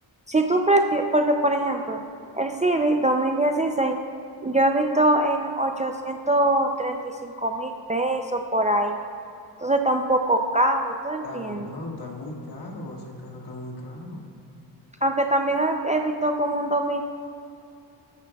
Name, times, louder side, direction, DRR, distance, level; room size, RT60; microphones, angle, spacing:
voice 1, 0.3-2.0 2.3-4.0 4.4-7.0 7.2-9.0 9.6-11.7 15.0-17.0, right 1 dB, 15° right, 3 dB, 0.4 m, -23 dB
voice 2, 11.2-14.2, left 2 dB, 60° left, -1 dB, 2.1 m, -37 dB
14.5 x 12.5 x 2.3 m, 2.7 s
cardioid pair, 105°, 44 cm